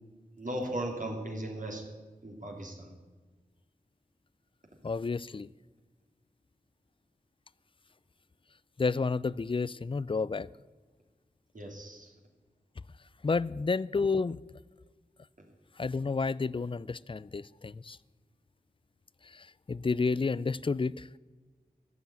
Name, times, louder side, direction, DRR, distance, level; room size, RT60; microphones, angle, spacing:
voice 1, 0.4-1.8 2.2-2.9 11.5-12.1, right 1 dB, 55° right, 1 dB, 2.9 m, -37 dB
voice 2, 4.8-5.5 8.8-10.5 13.2-14.4 15.8-18.0 19.3-21.2, left 4 dB, 35° left, 20 dB, 0.4 m, -30 dB
14.5 x 7.2 x 9.3 m, 1.3 s
wide cardioid pair, 55°, 16 cm